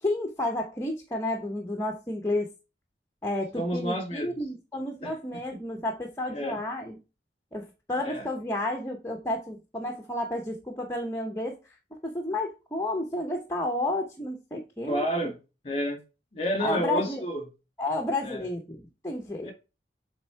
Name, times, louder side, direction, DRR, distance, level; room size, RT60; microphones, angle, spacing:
voice 1, 0.0-2.5 3.2-7.0 7.5-11.6 12.0-15.1 16.6-17.2 17.8-19.5, left 1 dB, 15° left, 0.9 m, -31 dB
voice 2, 3.6-4.3 5.0-5.1 6.3-6.6 8.0-8.2 14.9-15.3 15.6-16.0 16.3-17.4 18.2-18.4 19.4-19.5, equal, 35° left, 2.0 m, -30 dB
7.9 x 3.6 x 4.5 m
head